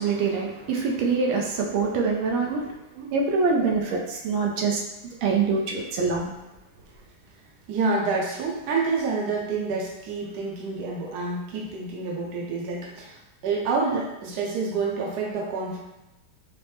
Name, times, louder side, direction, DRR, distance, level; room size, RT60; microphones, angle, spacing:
voice 1, 0.0-2.6 3.1-4.8 5.2-6.3, right 4 dB, 85° right, 0 dB, 1.4 m, -24 dB
voice 2, 7.7-15.8, right 4 dB, 65° right, -2 dB, 1.2 m, -28 dB
4.4 x 2.0 x 3.2 m, 0.92 s
omnidirectional pair, 2.2 m